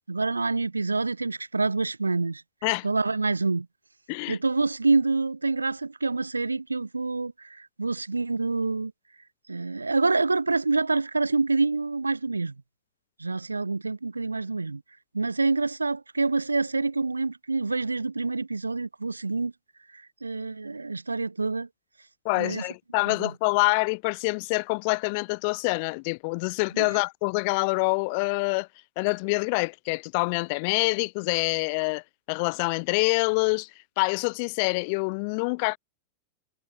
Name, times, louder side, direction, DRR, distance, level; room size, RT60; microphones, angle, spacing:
voice 1, 0.1-2.4 2.8-3.7 4.3-8.9 9.5-12.5 13.2-14.8 15.1-19.5 19.9-21.7 22.4-22.6 23.1-23.3 26.7-26.9, right 3 dB, 80° right, 5.1 m, -27 dB
voice 2, 22.2-28.7 29.0-33.7 34.0-35.8, left 33 dB, 45° left, 2.1 m, -26 dB
figure-of-eight pair, 90°, 0 cm